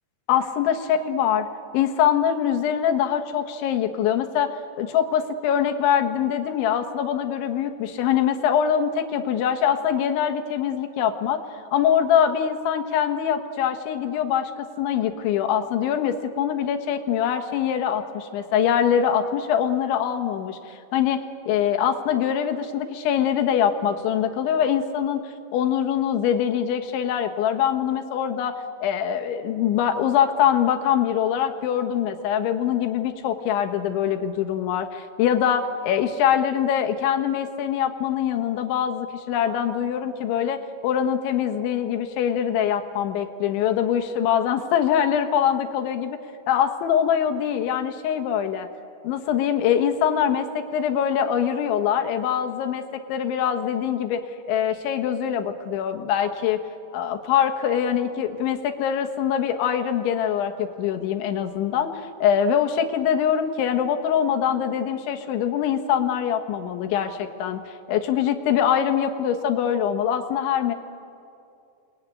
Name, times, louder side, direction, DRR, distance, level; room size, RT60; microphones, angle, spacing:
voice 1, 0.3-1.4 1.7-11.4 11.7-25.2 25.5-46.2 46.5-48.7 49.0-52.8 53.1-54.2 54.5-56.6 56.9-70.7, left 9 dB, 80° left, 6 dB, 3.7 m, -23 dB
29.0 x 21.0 x 9.6 m, 2.5 s
omnidirectional pair, 5.4 m